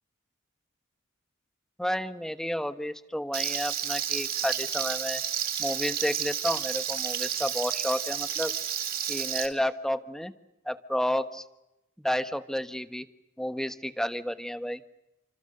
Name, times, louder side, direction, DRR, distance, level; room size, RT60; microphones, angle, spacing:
voice 1, 1.8-5.2 5.6-8.5 9.1-10.3 10.6-11.4 12.0-13.0 13.4-14.8, equal, ahead, 10 dB, 1.1 m, -31 dB
Frying (food), 3.3-9.5, right 9 dB, 45° right, 3.9 m, -31 dB
29.5 x 26.5 x 6.8 m, 0.91 s
head